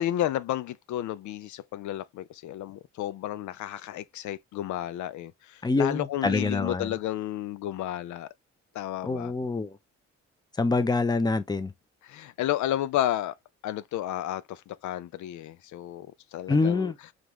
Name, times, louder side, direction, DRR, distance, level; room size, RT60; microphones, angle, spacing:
voice 1, 0.0-8.3 8.7-9.3 12.0-13.3 13.6-16.1 16.3-16.9, left 12 dB, 70° left, 0.5 m, -32 dB
voice 2, 5.6-6.9 9.0-9.7 10.6-11.7 16.5-16.9, left 3 dB, 15° left, 0.7 m, -25 dB
5.2 x 2.4 x 3.0 m
cardioid pair, 90°, 30 cm